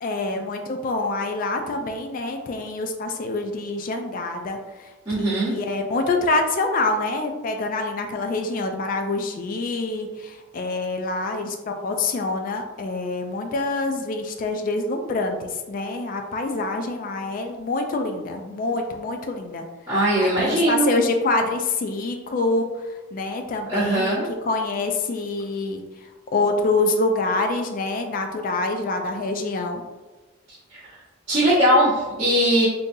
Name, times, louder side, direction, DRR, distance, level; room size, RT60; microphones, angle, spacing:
voice 1, 0.0-19.7 20.2-29.8, left 3 dB, 45° left, 5 dB, 0.3 m, -26 dB
voice 2, 5.1-5.5 19.9-21.0 23.7-24.3 30.7-31.0 31.3-32.7, right 1 dB, 25° right, -12 dB, 1.1 m, -20 dB
3.7 x 2.6 x 2.6 m, 1.2 s
head